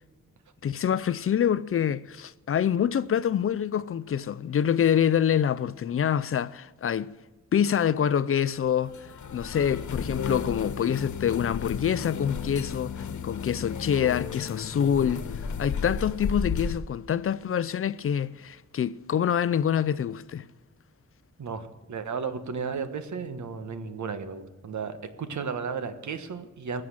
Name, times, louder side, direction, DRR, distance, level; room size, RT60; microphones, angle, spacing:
voice 1, 0.6-7.1 7.5-8.9 9.3-12.9 13.2-15.2 15.6-20.4, left 9 dB, 50° left, 0.4 m, -26 dB
sound 1, 8.6-16.8, left 6 dB, 85° left, 1.2 m, -34 dB
voice 2, 21.4-26.8, right 5 dB, 75° right, 1.4 m, -34 dB
20.5 x 7.6 x 7.4 m
wide cardioid pair, 155°, 29 cm